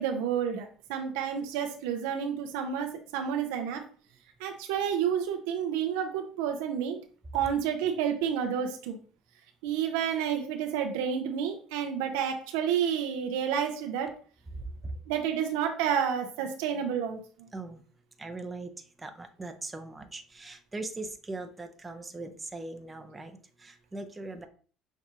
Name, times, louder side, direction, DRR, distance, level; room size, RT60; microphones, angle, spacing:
voice 1, 0.0-3.8 4.4-7.0 7.3-9.0 9.6-14.1 15.1-17.5, right 8 dB, 80° right, 4 dB, 0.6 m, -30 dB
voice 2, 18.2-18.7 19.0-24.5, right 2 dB, 20° right, 6 dB, 0.6 m, -40 dB
5.9 x 2.3 x 2.8 m, 0.42 s
hypercardioid pair, 75°, 0 cm